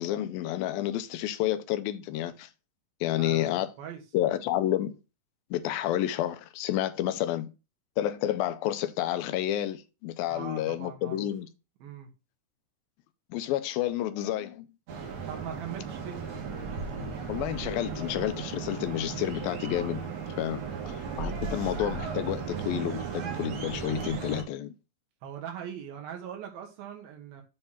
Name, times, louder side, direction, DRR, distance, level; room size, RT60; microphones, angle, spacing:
voice 1, 0.0-2.5 3.0-3.7 4.1-5.0 5.5-7.5 8.0-11.5 13.3-14.7 17.3-20.0 20.4-24.7, left 13 dB, 85° left, 2.4 m, -30 dB
voice 2, 3.2-4.0 10.3-11.3 11.8-12.1 15.3-16.2 20.5-20.9 25.2-27.4, right 9 dB, 80° right, 3.4 m, -41 dB
sound 1, 14.9-24.4, right 5 dB, 55° right, 2.5 m, -36 dB
8.1 x 3.3 x 5.7 m
omnidirectional pair, 4.2 m